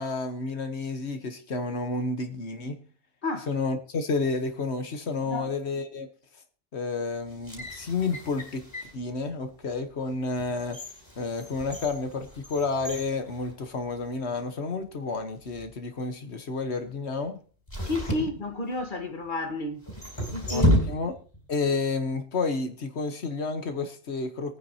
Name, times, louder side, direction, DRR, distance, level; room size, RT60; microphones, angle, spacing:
voice 1, 0.0-2.8 3.5-6.1 6.7-8.7 8.9-10.8 11.2-17.4 20.5-21.2 21.5-24.6, left 3 dB, 85° left, 1.6 m, -30 dB
sound 1, 7.3-9.0 9.6-9.8 10.3-14.1 14.4-14.5 15.3-15.7 17.7-19.0 19.8-21.4 21.7-21.8, equal, 25° left, 5.6 m, -31 dB
voice 2, 17.8-19.8 20.3-20.7, left 2 dB, 50° left, 1.8 m, -31 dB
24.0 x 9.7 x 2.9 m
omnidirectional pair, 1.1 m